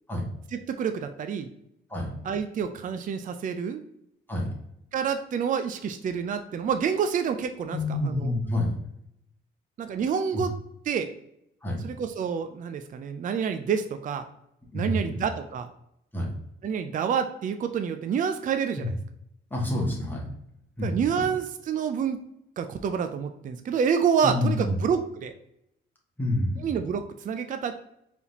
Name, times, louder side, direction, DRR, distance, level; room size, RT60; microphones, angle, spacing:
voice 1, 0.5-1.5 2.2-3.8 4.9-7.8 8.0-8.3 9.8-10.5 10.9-11.1 11.8-14.2 14.7-15.7 16.6-18.9 20.8-22.2 22.6-25.3 26.6-27.7, right 7 dB, 40° right, 8 dB, 0.4 m, -28 dB
voice 2, 7.7-8.7 10.3-10.4 11.6-11.8 14.7-15.2 16.1-16.3 18.7-18.9 19.5-20.2 20.8-20.9 24.2-24.8 26.2-26.7, left 1 dB, 10° left, -2 dB, 1.6 m, -28 dB
4.5 x 3.5 x 2.8 m, 0.78 s
cardioid pair, 90°, 20 cm